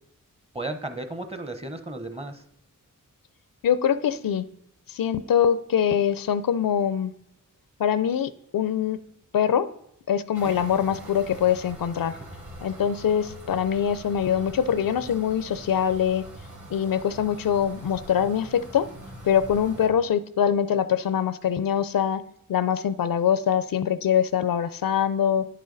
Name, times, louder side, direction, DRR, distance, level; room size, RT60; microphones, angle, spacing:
voice 1, 0.5-2.4 10.4-10.5 12.1-12.2, right 2 dB, 20° right, 8 dB, 0.8 m, -34 dB
voice 2, 3.6-4.5 4.9-7.1 7.8-9.0 9.3-9.7 10.1-12.1 12.6-16.3 16.7-18.9 19.2-22.2 22.5-25.5, left 8 dB, 85° left, 14 dB, 0.5 m, -23 dB
sound 1, 10.3-19.9, right 1 dB, 65° right, 2.6 m, -43 dB
10.0 x 6.4 x 3.9 m, 0.75 s
wide cardioid pair, 80°, 34 cm